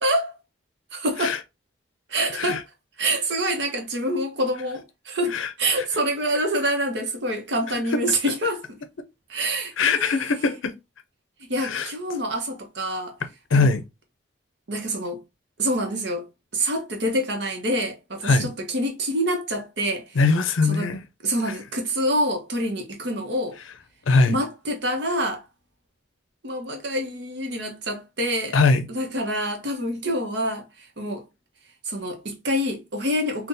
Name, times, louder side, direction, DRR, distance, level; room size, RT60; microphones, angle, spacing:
voice 1, 0.0-0.3 0.9-1.4 2.1-2.6 3.0-8.8 9.3-10.2 11.4-13.2 13.5-13.7 14.7-15.2 15.6-16.3 16.5-20.2 20.7-20.9 21.2-23.6 24.3-25.4 26.4-28.5 28.9-31.2 31.8-33.5, right 1 dB, 60° right, 0.9 m, -26 dB
voice 2, 5.3-5.9 7.9-8.0 9.8-10.7 11.6-11.9 13.5-13.8 18.2-18.5 20.1-21.0 21.5-21.6 24.1-24.4 28.5-28.9, left 4 dB, 85° left, 0.5 m, -21 dB
3.7 x 2.3 x 2.6 m
head